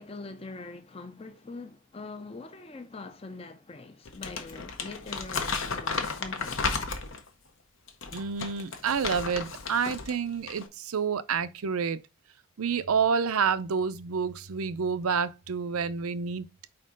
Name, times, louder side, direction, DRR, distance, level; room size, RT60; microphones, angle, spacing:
voice 1, 0.0-6.9, left 3 dB, 25° left, 0.5 m, -43 dB
Crumpling crinkling, 4.1-7.3 7.9-10.1 10.4-10.7, left 4 dB, 65° left, 0.9 m, -33 dB
voice 2, 8.1-12.0 12.6-16.5, right 6 dB, 85° right, 0.5 m, -28 dB
4.6 x 4.3 x 5.0 m
head